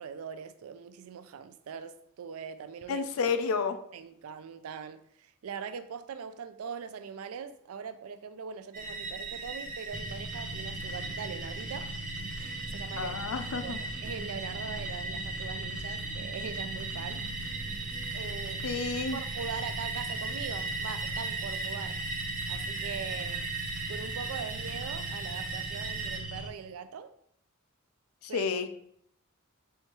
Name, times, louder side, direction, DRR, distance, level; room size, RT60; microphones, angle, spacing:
voice 1, 0.0-3.1 3.9-11.9 12.4-17.3 18.1-18.8 19.1-22.0 22.5-23.4 23.9-27.1 28.3-28.5, right 6 dB, 80° right, 0.4 m, -41 dB
voice 2, 2.9-3.8 13.0-13.8 18.6-19.2 28.2-28.7, left 5 dB, 75° left, 0.4 m, -30 dB
sound 1, 8.7-26.2, right 3 dB, 40° right, 0.7 m, -38 dB
sound 2, 9.9-26.5, right 1 dB, 5° right, 0.7 m, -40 dB
Acoustic guitar, 10.1-18.1, right 1 dB, 15° left, 1.7 m, -53 dB
4.5 x 3.4 x 2.9 m
head